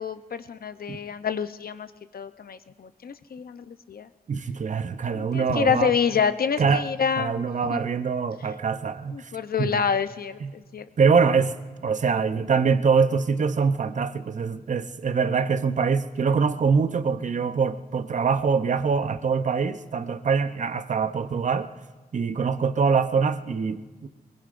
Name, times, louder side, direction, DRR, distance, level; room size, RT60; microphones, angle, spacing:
voice 1, 0.0-4.1 5.1-7.4 7.7-7.8 9.1-10.8, left 7 dB, 65° left, 11 dB, 0.7 m, -27 dB
voice 2, 4.3-5.9 6.6-6.8 7.2-9.3 9.6-9.8 10.4-10.5 11.0-11.5 11.8-21.7 22.1-24.1, right 5 dB, 50° right, 11 dB, 0.7 m, -24 dB
23.5 x 22.0 x 2.5 m, 1.3 s
wide cardioid pair, 120°, 17 cm